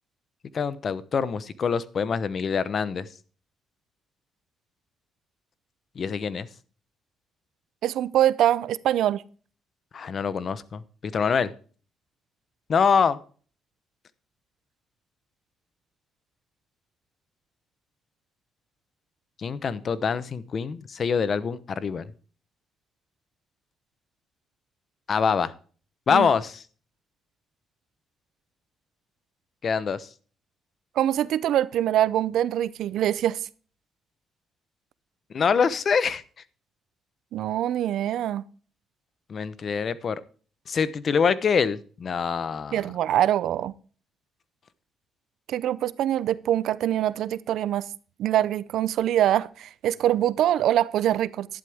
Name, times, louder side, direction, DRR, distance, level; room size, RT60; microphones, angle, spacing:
voice 1, 0.5-3.1 5.9-6.5 9.9-11.5 12.7-13.2 19.4-22.1 25.1-25.5 26.1-26.6 29.6-30.1 35.3-36.2 39.3-40.2 40.7-42.9, left 6 dB, 50° left, 0.9 m, -25 dB
voice 2, 7.8-9.2 26.1-26.3 31.0-33.4 37.3-38.4 42.7-43.7 45.5-47.9 48.2-51.5, right 12 dB, 80° right, 0.6 m, -24 dB
11.5 x 11.0 x 3.6 m
cardioid pair, 90°, 0 cm